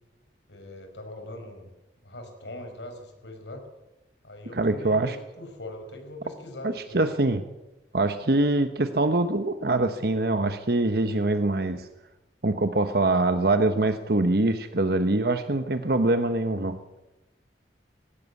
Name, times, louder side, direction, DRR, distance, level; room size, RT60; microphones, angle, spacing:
voice 1, 0.5-1.7 2.0-3.6 4.2-7.0, left 1 dB, 80° left, 5 dB, 5.1 m, -41 dB
voice 2, 4.5-5.2 6.6-7.4 7.9-11.9 12.4-16.8, right 2 dB, 60° right, 9 dB, 1.1 m, -24 dB
19.5 x 17.0 x 8.4 m, 0.98 s
head